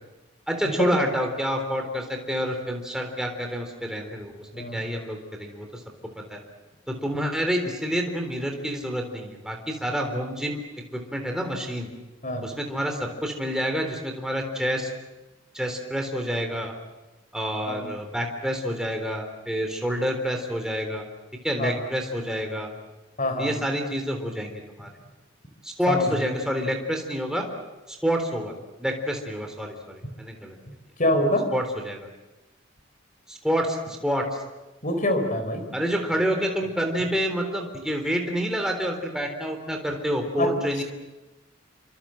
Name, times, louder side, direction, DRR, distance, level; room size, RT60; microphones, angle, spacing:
voice 1, 0.5-5.7 6.2-6.4 6.9-10.6 10.9-11.9 12.4-14.9 15.5-16.7 17.3-21.0 21.4-22.7 23.4-24.9 25.6-27.4 27.9-28.5 28.8-30.6 31.5-32.1 33.3-34.2 35.7-40.8, equal, 5° right, 3 dB, 3.7 m, -28 dB
voice 2, 23.2-23.5 25.9-26.1 31.0-31.5 34.8-35.7 40.4-40.8, left 1 dB, 40° left, 8 dB, 4.2 m, -25 dB
28.5 x 25.5 x 7.7 m, 1.1 s
head